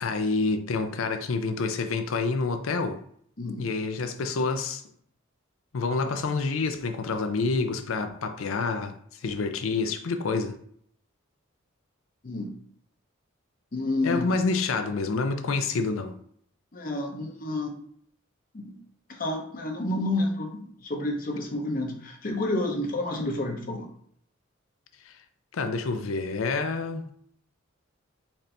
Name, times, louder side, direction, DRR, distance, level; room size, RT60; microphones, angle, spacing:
voice 1, 0.0-3.0 3.6-4.8 5.7-8.9 9.2-10.6 14.0-16.2 25.1-25.2 25.5-27.1, left 4 dB, 85° left, 0.5 m, -28 dB
voice 2, 13.7-14.3 16.7-17.8 18.5-18.8 19.1-23.9, left 2 dB, 45° left, 0.7 m, -30 dB
4.2 x 2.6 x 3.3 m
head